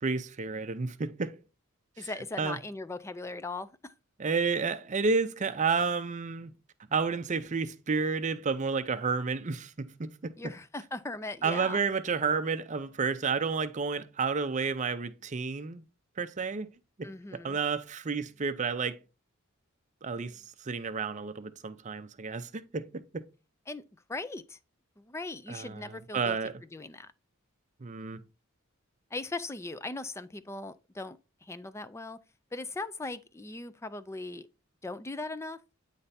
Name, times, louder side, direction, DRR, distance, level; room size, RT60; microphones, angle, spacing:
voice 1, 0.0-1.4 2.0-2.1 2.4-2.6 4.2-6.5 6.9-10.4 11.4-15.8 16.2-16.7 17.0-19.0 20.0-23.3 25.5-26.6 27.8-28.2, right 5 dB, 35° right, 0.5 m, -31 dB
voice 2, 2.0-3.9 10.4-11.8 17.0-17.6 23.7-23.8 24.1-24.6 25.0-26.4 26.7-27.1 29.1-32.2 32.5-34.5 34.8-35.6, left 2 dB, 15° left, 0.4 m, -39 dB
9.3 x 3.3 x 4.1 m
head